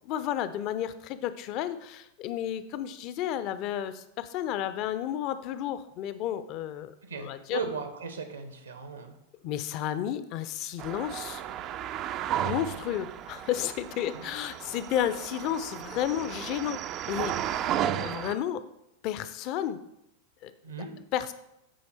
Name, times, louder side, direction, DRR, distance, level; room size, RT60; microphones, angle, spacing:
voice 1, 0.0-7.6 9.4-11.4 12.4-17.4 18.0-18.7 19.0-19.8 20.4-20.5 20.8-20.9 21.1-21.3, left 11 dB, 40° left, 13 dB, 0.5 m, -32 dB
voice 2, 7.0-9.1 14.1-14.2 20.6-20.9, right 5 dB, 75° right, 7 dB, 1.0 m, -37 dB
sound 1, 10.8-18.4, right 10 dB, 35° right, 0.4 m, -34 dB
9.2 x 4.4 x 4.4 m, 0.82 s
figure-of-eight pair, 90°, 0 cm